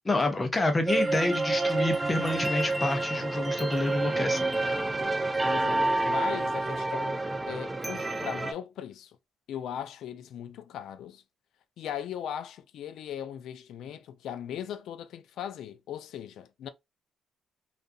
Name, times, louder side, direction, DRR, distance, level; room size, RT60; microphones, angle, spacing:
voice 1, 0.1-4.5, left 2 dB, 20° left, 0.7 m, -28 dB
sound 1, 0.9-8.5, right 2 dB, 20° right, 0.4 m, -28 dB
voice 2, 5.5-9.2 9.5-11.2 11.8-16.7, left 9 dB, 75° left, 0.3 m, -38 dB
2.5 x 2.3 x 2.5 m
cardioid pair, 90°, 0 cm